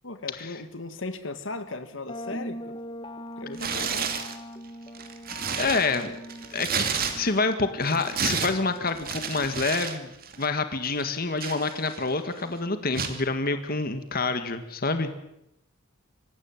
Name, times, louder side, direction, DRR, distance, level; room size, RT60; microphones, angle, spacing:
voice 1, 0.0-2.8 3.4-4.1, left 3 dB, 75° left, 10 dB, 1.9 m, -37 dB
sound 1, 2.1-9.7, equal, 25° left, 1.1 m, -42 dB
Tearing, 3.5-4.4 4.9-7.5 7.8-10.0 10.2-10.5 11.0-12.1 12.9-13.2, right 6 dB, 50° right, 2.6 m, -31 dB
voice 2, 5.6-6.2 6.5-6.9 7.1-10.1 10.4-15.1, left 3 dB, 50° left, 9 dB, 1.9 m, -27 dB
25.5 x 15.5 x 9.0 m, 0.84 s
head